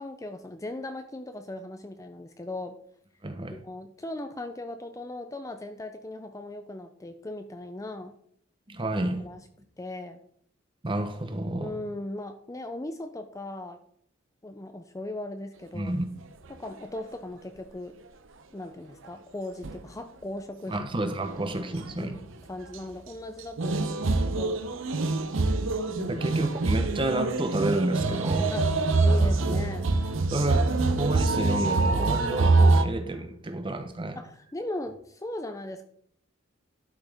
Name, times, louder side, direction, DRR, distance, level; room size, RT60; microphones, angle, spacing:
voice 1, 0.0-2.8 3.5-8.1 9.2-9.4 9.8-10.2 11.6-13.8 14.4-15.9 16.5-17.9 18.5-20.8 21.6-21.7 22.0-22.2 22.5-24.6 26.0-26.2 28.5-28.7 29.0-29.9 34.2-35.8, left 1 dB, 15° left, 0.5 m, -38 dB
voice 2, 3.2-3.6 8.7-9.3 10.8-11.8 15.7-16.0 20.7-22.2 26.1-28.5 30.3-34.2, right 1 dB, 25° right, 0.9 m, -30 dB
sound 1, 19.6-19.8 21.2-21.5 21.8-21.9 23.6-32.9, right 3 dB, 65° right, 0.7 m, -24 dB
12.0 x 5.9 x 3.5 m
head